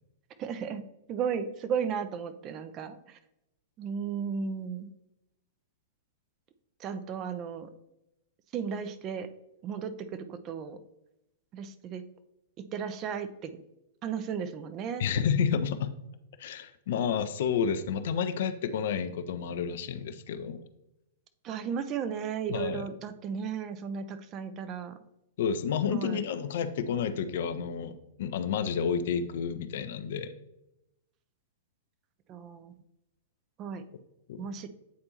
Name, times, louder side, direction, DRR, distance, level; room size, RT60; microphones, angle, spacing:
voice 1, 0.4-0.8 1.1-3.2 3.8-4.9 6.8-7.7 8.5-9.3 9.6-10.8 11.5-12.0 12.6-13.6 14.0-15.0 21.4-25.0 25.9-26.2 32.3-32.7 33.6-33.8 34.4-34.7, right 7 dB, 30° right, 10 dB, 0.4 m, -35 dB
voice 2, 15.0-15.9 16.4-20.6 22.5-22.9 25.4-30.3 34.3-34.5, left 7 dB, 50° left, 11 dB, 0.4 m, -30 dB
8.4 x 4.2 x 2.8 m, 0.89 s
figure-of-eight pair, 105°, 0 cm